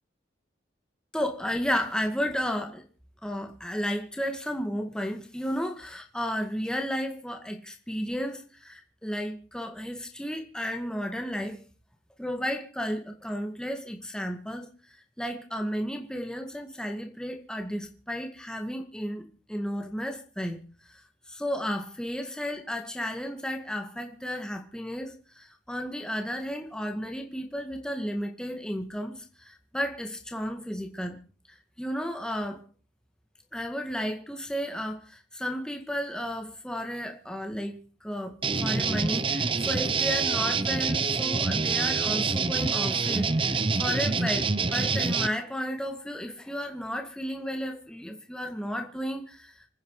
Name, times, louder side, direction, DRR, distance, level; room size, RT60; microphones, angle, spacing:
voice 1, 1.1-2.8 3.2-11.6 12.2-31.2 31.5-32.6 33.5-38.3 38.6-49.5, equal, 5° left, 2.0 m, -33 dB
sound 1, 38.4-45.3, right 4 dB, 30° right, 0.8 m, -26 dB
26.5 x 9.8 x 4.9 m
head